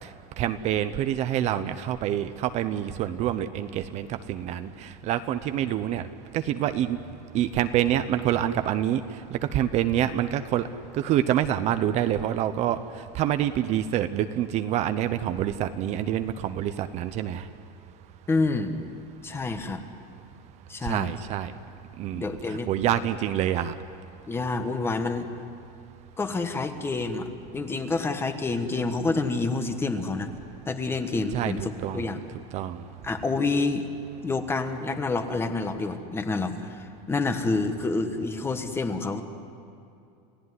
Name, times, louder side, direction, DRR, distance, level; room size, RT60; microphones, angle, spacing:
voice 1, 0.4-6.0 6.3-7.0 7.3-9.0 9.3-10.7 10.9-12.8 13.1-17.4 20.8-21.5 22.0-23.7 31.3-31.5 31.8-32.1 32.5-32.8, right 11 dB, 40° right, 10 dB, 0.8 m, -26 dB
voice 2, 18.3-18.7 19.2-19.8 20.7-21.1 22.2-22.7 24.3-25.3 26.2-27.3 27.5-30.3 30.7-32.2 33.0-33.8 34.2-39.2, left 3 dB, 15° left, 7 dB, 1.4 m, -28 dB
29.5 x 16.0 x 9.8 m, 2.6 s
cardioid pair, 160°, 18 cm